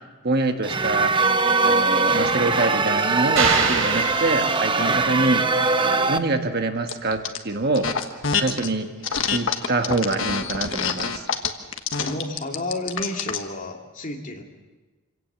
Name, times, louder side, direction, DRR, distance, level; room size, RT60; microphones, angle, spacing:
voice 1, 0.2-1.1 1.6-5.4 6.1-7.9 8.3-8.9 9.2-11.2, right 2 dB, 50° right, 6 dB, 1.5 m, -25 dB
sound 1, 0.6-6.2, right 4 dB, 25° right, 0.8 m, -21 dB
sound 2, 3.4-5.1, right 4 dB, 70° right, 3.4 m, -25 dB
sound 3, 6.9-7.4 7.7-8.7 9.0-13.5, left 6 dB, 65° left, 1.4 m, -26 dB
voice 2, 12.0-14.4, left 2 dB, 40° left, 1 dB, 2.6 m, -31 dB
26.0 x 17.5 x 7.4 m, 1.2 s
head